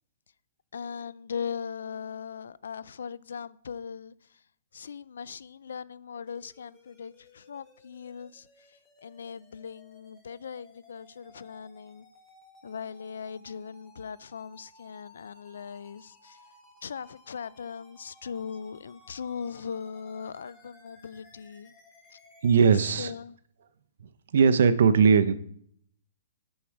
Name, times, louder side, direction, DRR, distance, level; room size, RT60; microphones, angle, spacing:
voice 1, 0.7-4.4 4.7-12.1 12.6-16.4 16.8-21.7 22.1-22.2 22.7-23.4, left 6 dB, 85° left, 0.3 m, -39 dB
sound 1, 6.3-22.9, left 2 dB, 10° left, 1.4 m, -58 dB
voice 2, 22.4-23.1 24.3-25.3, right 6 dB, 70° right, 0.6 m, -19 dB
7.0 x 6.4 x 4.6 m
hypercardioid pair, 160°, 0 cm